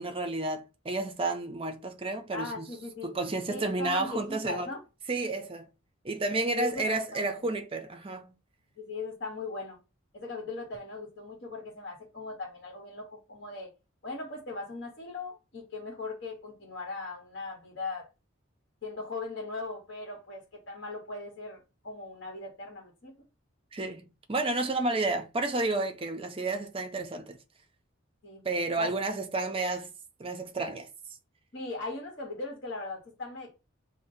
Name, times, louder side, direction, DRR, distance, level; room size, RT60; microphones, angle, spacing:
voice 1, 0.0-2.7 3.0-4.7 5.1-5.7 6.0-8.3 23.7-27.4 28.4-29.9 30.2-30.9, right 2 dB, 25° right, 0.5 m, -31 dB
voice 2, 2.3-3.1 3.5-4.8 6.5-7.3 8.8-9.8 10.1-13.7 14.0-18.1 18.8-23.1 28.2-28.4 28.8-28.9 31.5-33.5, left 3 dB, 60° left, 1.2 m, -39 dB
5.8 x 2.1 x 2.7 m
head